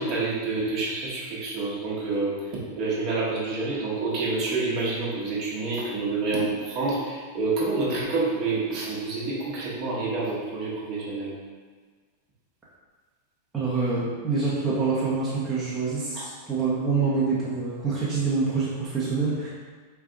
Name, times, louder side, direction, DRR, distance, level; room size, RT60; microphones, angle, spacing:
voice 1, 0.0-11.3 16.1-16.2, right 3 dB, 40° right, -6 dB, 1.2 m, -28 dB
voice 2, 13.5-19.5, right 4 dB, 15° right, -9 dB, 0.9 m, -26 dB
4.7 x 3.4 x 2.5 m, 1.5 s
figure-of-eight pair, 90°, 0 cm